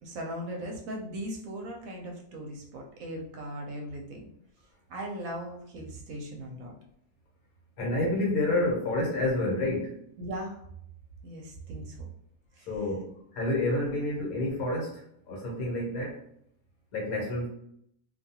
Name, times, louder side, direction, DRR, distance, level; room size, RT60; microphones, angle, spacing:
voice 1, 0.0-4.3 4.9-6.7 10.2-10.6 11.2-12.1 12.6-12.7, right 1 dB, 70° right, 1 dB, 0.9 m, -38 dB
voice 2, 7.8-10.0 12.7-15.0 15.3-16.2 16.9-17.5, left 1 dB, 75° left, -2 dB, 1.3 m, -29 dB
2.6 x 2.3 x 2.7 m, 0.71 s
omnidirectional pair, 1.6 m